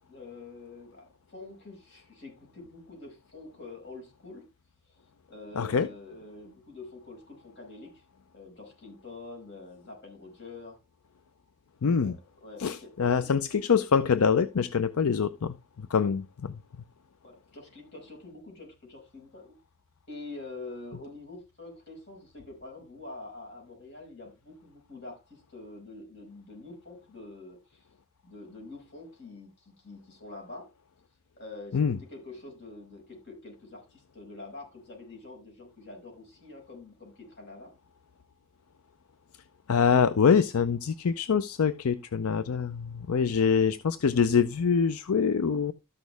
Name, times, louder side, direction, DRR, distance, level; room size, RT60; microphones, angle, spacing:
voice 1, 0.1-4.5 4.9-5.0 5.3-8.0 8.3-10.8 12.0-12.1 12.4-13.3 15.9-16.1 17.2-19.5 20.1-27.8 28.2-30.7 31.4-37.7, left 2 dB, 50° left, 5.4 m, -46 dB
voice 2, 5.6-5.9 11.8-12.1 12.6-15.5 15.9-16.5 31.7-32.0 39.7-45.7, left 6 dB, 80° left, 0.5 m, -24 dB
13.0 x 6.3 x 3.4 m
head